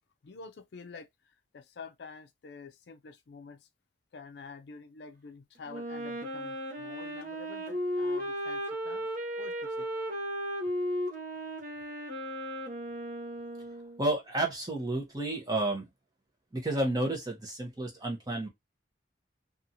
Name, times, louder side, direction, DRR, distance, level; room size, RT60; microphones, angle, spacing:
voice 1, 0.2-1.1 1.5-3.6 4.1-8.6 8.8-9.1 9.4-9.9, left 4 dB, 65° left, 0.4 m, -48 dB
Wind instrument woodwind instrument, 5.7-14.1, equal, 50° right, 0.8 m, -35 dB
voice 2, 14.0-15.9 16.5-18.5, right 2 dB, 20° right, 0.9 m, -31 dB
2.7 x 2.4 x 2.7 m
head